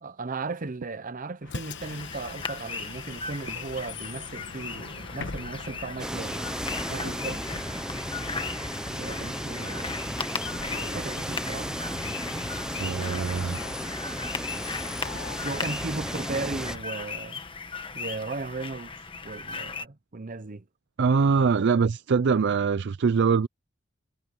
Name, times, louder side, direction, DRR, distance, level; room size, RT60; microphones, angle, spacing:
voice 1, 0.0-6.6 6.9-7.5 8.9-9.9 10.8-11.8 15.4-17.4 17.9-18.9 19.2-20.6, right 3 dB, 40° right, 0.9 m, -36 dB
Bus, 1.4-16.8, left 4 dB, 60° left, 1.2 m, -42 dB
sound 1, 1.8-19.9, left 4 dB, 25° left, 1.4 m, -38 dB
sound 2, 6.0-16.8, right 1 dB, 5° right, 0.8 m, -34 dB
voice 2, 12.8-13.6 21.0-23.5, right 5 dB, 55° right, 0.4 m, -23 dB
head